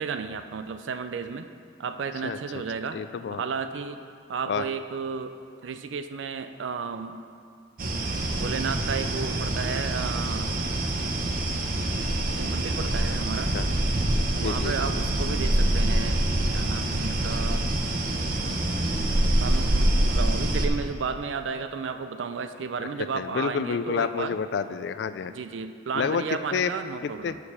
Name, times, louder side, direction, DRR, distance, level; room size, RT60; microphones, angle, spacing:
voice 1, 0.0-1.5 1.8-3.0 3.3-4.0 4.3-5.4 5.6-7.1 8.3-10.5 12.4-13.5 14.3-16.2 16.5-17.7 19.3-24.4 25.3-27.4, right 5 dB, 85° right, 9 dB, 0.5 m, -33 dB
voice 2, 2.9-3.4 4.5-4.6 13.5-13.7 14.3-14.8 22.8-22.9 23.1-25.3 25.9-26.2 26.5-26.7 27.0-27.4, left 6 dB, 65° left, 12 dB, 0.3 m, -29 dB
sound 1, 7.8-20.7, right 1 dB, 50° right, 0.8 m, -25 dB
6.8 x 6.6 x 5.6 m, 2.3 s
head